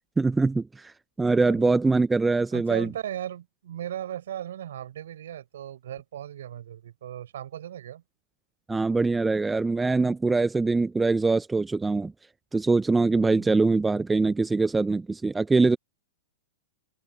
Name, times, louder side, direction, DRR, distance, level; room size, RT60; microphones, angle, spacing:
voice 1, 0.2-2.9 8.7-12.1 12.5-15.8, right 3 dB, 10° right, 1.1 m, -23 dB
voice 2, 2.5-8.0 13.2-13.5, right 11 dB, 60° right, 6.0 m, -37 dB
figure-of-eight pair, 100°, 0 cm